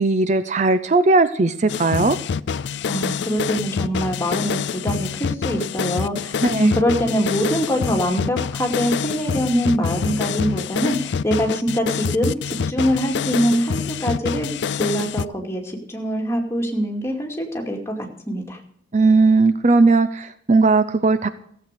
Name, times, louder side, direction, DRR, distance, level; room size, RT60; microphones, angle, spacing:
voice 1, 0.0-2.2 6.4-6.8 18.9-21.3, right 3 dB, 40° right, 12 dB, 0.6 m, -17 dB
sound 1, 1.7-15.3, left 6 dB, 70° left, 0.4 m, -26 dB
voice 2, 2.9-17.9 18.3-18.6, equal, 15° left, 1 dB, 2.4 m, -23 dB
15.0 x 8.0 x 6.7 m, 0.70 s
head